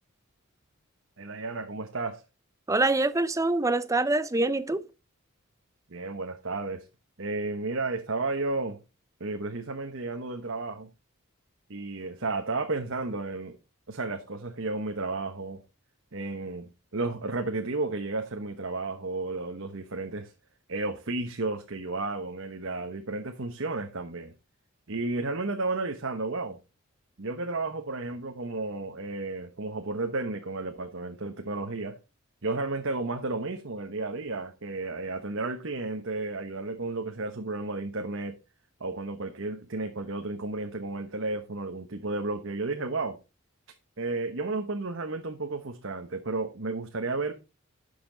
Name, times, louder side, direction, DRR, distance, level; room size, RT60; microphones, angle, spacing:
voice 1, 1.2-2.2 5.9-6.9 7.2-8.8 9.2-10.9 11.7-13.6 13.9-15.6 16.1-20.3 20.7-24.3 24.9-26.6 27.2-32.0 32.4-38.4 38.8-43.2 44.0-47.3, right 3 dB, 60° right, 1.1 m, -32 dB
voice 2, 2.7-4.8, right 2 dB, 15° right, 0.6 m, -25 dB
11.5 x 6.9 x 3.9 m
head